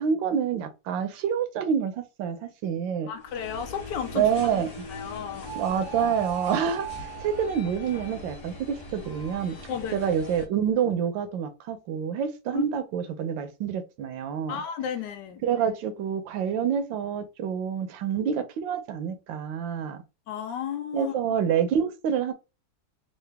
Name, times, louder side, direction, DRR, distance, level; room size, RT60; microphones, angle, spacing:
voice 1, 0.0-3.1 4.1-4.9 5.6-9.6 9.9-14.6 15.4-20.0 20.9-22.3, right 7 dB, 80° right, 1.4 m, -27 dB
voice 2, 3.1-4.2 4.9-5.5 9.7-10.1 12.5-12.7 14.5-15.4 20.3-21.1, left 8 dB, 75° left, 1.2 m, -33 dB
sound 1, 3.2-10.5, right 2 dB, 50° left, 1.3 m, -39 dB
3.8 x 2.4 x 3.3 m
omnidirectional pair, 2.0 m